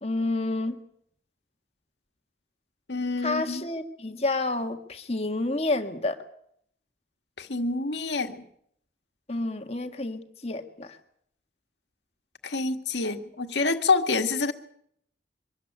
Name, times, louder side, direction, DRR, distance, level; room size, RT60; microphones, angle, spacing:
voice 1, 0.0-0.8 3.2-6.2 9.3-11.0, left 2 dB, 35° left, 1.7 m, -29 dB
voice 2, 2.9-3.6 7.4-8.5 12.4-14.5, left 3 dB, 85° left, 1.7 m, -27 dB
24.0 x 13.5 x 10.0 m
head